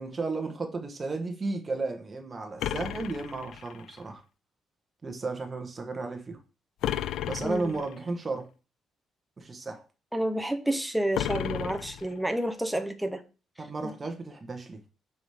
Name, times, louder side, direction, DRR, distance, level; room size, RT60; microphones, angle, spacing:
voice 1, 0.0-4.2 5.0-6.4 7.2-8.5 9.4-9.8 13.6-14.8, right 3 dB, 20° right, 1.1 m, -34 dB
sound 1, 2.6-4.0 6.8-8.0 11.1-12.5, left 11 dB, 70° left, 0.3 m, -33 dB
voice 2, 7.4-7.8 10.1-13.2 13.8-13.9, right 1 dB, 5° right, 0.6 m, -30 dB
6.9 x 4.9 x 3.4 m
cardioid pair, 170°, 0 cm